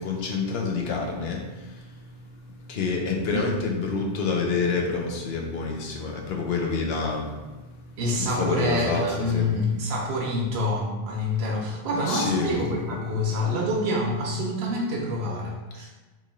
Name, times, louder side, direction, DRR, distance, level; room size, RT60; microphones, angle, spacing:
voice 1, 0.0-1.9 2.7-7.3 7.6-7.7 8.4-9.5 12.1-12.5, left 4 dB, 80° left, 1 dB, 0.9 m, -27 dB
voice 2, 8.0-15.9, left 1 dB, 80° right, -2 dB, 0.8 m, -27 dB
3.1 x 2.4 x 4.0 m, 1.2 s
omnidirectional pair, 1.0 m